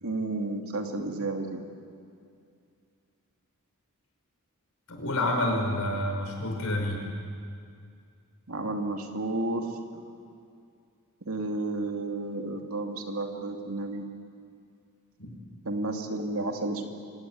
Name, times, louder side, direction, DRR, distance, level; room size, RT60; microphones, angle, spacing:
voice 1, 0.0-1.6 8.5-9.7 11.3-14.1 15.7-16.9, right 2 dB, 75° right, 3 dB, 2.6 m, -31 dB
voice 2, 4.9-7.0 15.2-15.4, left 1 dB, 90° left, 1 dB, 5.4 m, -28 dB
27.5 x 17.0 x 9.4 m, 2.3 s
head